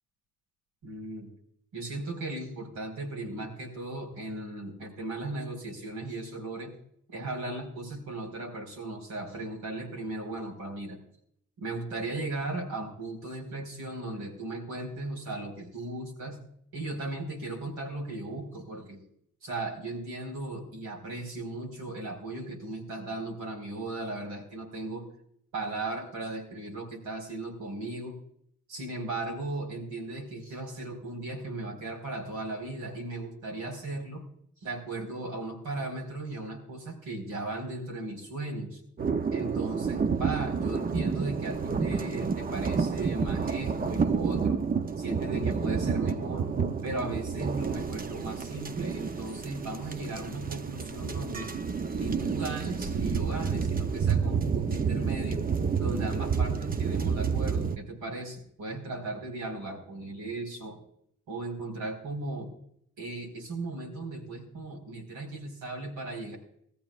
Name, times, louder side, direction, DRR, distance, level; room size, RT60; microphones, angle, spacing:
voice 1, 0.8-1.3 1.7-6.7 7.1-11.0 11.6-16.4 16.7-19.0 19.4-25.1 25.5-28.2 28.7-34.3 34.6-38.8 39.3-44.6 45.0-46.5 46.8-51.5 51.9-55.4 55.8-60.8 61.3-62.5 63.0-66.4, right 2 dB, 85° right, 1 dB, 4.6 m, -37 dB
sound 1, 39.0-57.8, right 5 dB, 30° right, 0.7 m, -29 dB
19.0 x 14.0 x 2.4 m, 0.66 s
cardioid pair, 90°, 30 cm